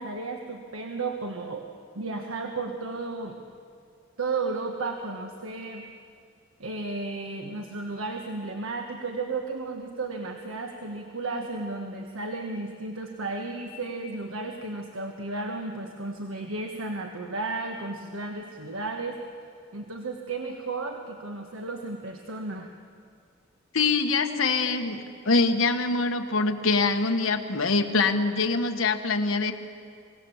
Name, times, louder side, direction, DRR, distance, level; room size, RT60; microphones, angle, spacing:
voice 1, 0.0-1.7 1.9-3.4 4.2-5.8 6.6-19.2 19.7-22.7, right 3 dB, 85° right, 3 dB, 1.4 m, -33 dB
voice 2, 23.7-29.5, left 3 dB, 80° left, 5 dB, 1.4 m, -24 dB
24.5 x 18.0 x 7.2 m, 2.3 s
head